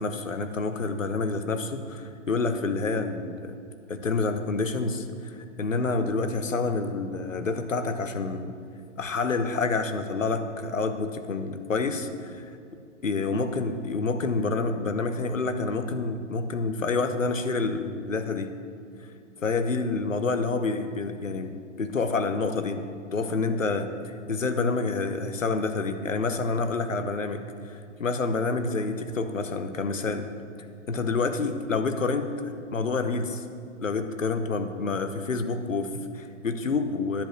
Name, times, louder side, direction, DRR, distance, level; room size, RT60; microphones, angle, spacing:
voice 1, 0.0-3.6 3.9-8.5 9.0-12.5 13.0-18.5 19.4-30.3 30.9-33.4 33.8-37.2, left 3 dB, 90° left, 8 dB, 1.0 m, -28 dB
10.5 x 5.3 x 7.5 m, 2.4 s
figure-of-eight pair, 125°, 38 cm